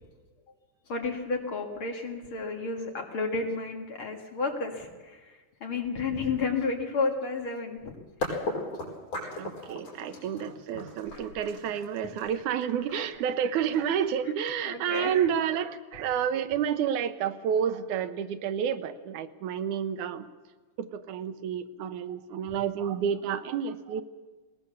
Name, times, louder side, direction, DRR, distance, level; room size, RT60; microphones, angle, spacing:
voice 1, 0.9-8.0 11.1-11.2 12.9-13.0 14.6-15.1, left 4 dB, 45° left, 2 dB, 2.7 m, -32 dB
sound 1, 7.8-7.9 8.2-14.0, left 2 dB, 75° left, 6.6 m, -37 dB
voice 2, 9.4-20.3 20.8-24.0, right 8 dB, 85° right, 11 dB, 2.3 m, -30 dB
20.0 x 19.0 x 7.0 m, 1.3 s
omnidirectional pair, 3.5 m